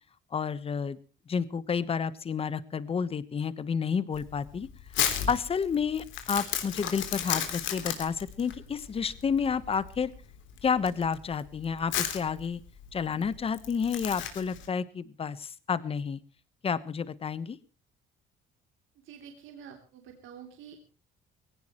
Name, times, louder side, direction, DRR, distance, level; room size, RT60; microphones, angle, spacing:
voice 1, 0.3-1.0 1.3-4.7 5.0-10.1 10.6-12.6 12.9-16.2 16.6-17.6, left 6 dB, 30° left, 16 dB, 1.1 m, -30 dB
Crumpling crinkling, 4.1-14.7, left 9 dB, 70° left, 3.5 m, -34 dB
voice 2, 19.0-20.8, right 8 dB, 75° right, 3 dB, 3.3 m, -48 dB
21.0 x 17.5 x 3.1 m, 0.34 s
cardioid pair, 145°, 20 cm